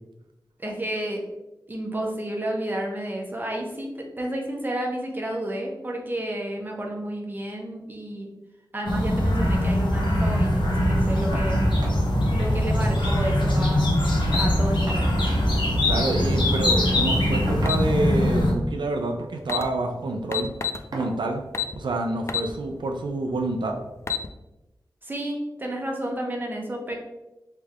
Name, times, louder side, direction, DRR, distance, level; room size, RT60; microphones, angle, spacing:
voice 1, 0.6-1.2 1.7-8.3 8.7-11.6 12.3-14.0 14.4-15.2 25.0-26.9, right 1 dB, 25° right, 0 dB, 0.9 m, -31 dB
sound 1, 8.9-18.5, left 1 dB, 85° left, 1.0 m, -22 dB
sound 2, 11.3-11.5 11.8-12.0 12.4-12.5 12.8-13.5 14.3-15.1 16.3-16.5 17.5-18.1 19.2-19.5 19.9-20.1 20.9-21.2 22.5-22.6 23.1-23.2, right 1 dB, 60° right, 0.8 m, -39 dB
voice 2, 15.9-20.5 20.9-21.4 21.8-23.8, right 2 dB, 80° right, 3 dB, 0.4 m, -28 dB
sound 3, 17.6-17.8 19.1-19.2 19.4-19.7 20.3-20.8 21.5-21.8 22.3-22.5 22.9-23.0 23.8-24.3, left 8 dB, 35° left, 0.4 m, -27 dB
3.4 x 3.2 x 3.5 m, 0.98 s
wide cardioid pair, 85°, 8 cm